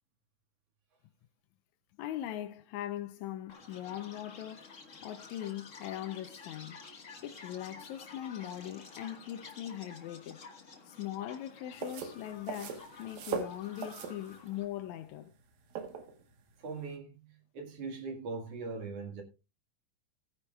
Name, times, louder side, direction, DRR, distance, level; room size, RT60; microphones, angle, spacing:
voice 1, 2.0-4.7 5.0-6.8 7.2-10.4 10.8-15.3, left 12 dB, 80° left, 1.7 m, -40 dB
Chirp tweet, 3.5-14.6, left 4 dB, 45° left, 1.0 m, -51 dB
sound 1, 11.7-16.9, right 6 dB, 90° right, 3.1 m, -41 dB
voice 2, 16.6-19.2, right 4 dB, 50° right, 2.6 m, -41 dB
17.5 x 9.8 x 2.3 m
omnidirectional pair, 3.9 m